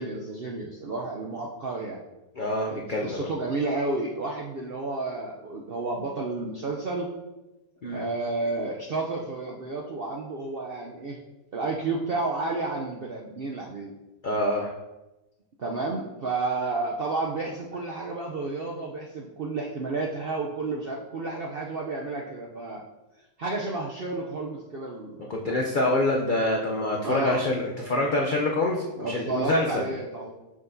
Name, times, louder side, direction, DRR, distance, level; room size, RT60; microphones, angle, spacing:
voice 1, 0.0-2.0 2.6-7.1 7.8-11.2 11.5-13.9 15.6-22.8 23.4-25.3 27.0-27.4 29.0-30.4, right 3 dB, 65° right, -1 dB, 0.5 m, -31 dB
voice 2, 2.4-3.3 7.8-8.0 14.2-14.7 25.3-29.8, left 1 dB, 75° left, -1 dB, 0.4 m, -26 dB
6.3 x 5.7 x 2.6 m, 1.0 s
omnidirectional pair, 1.7 m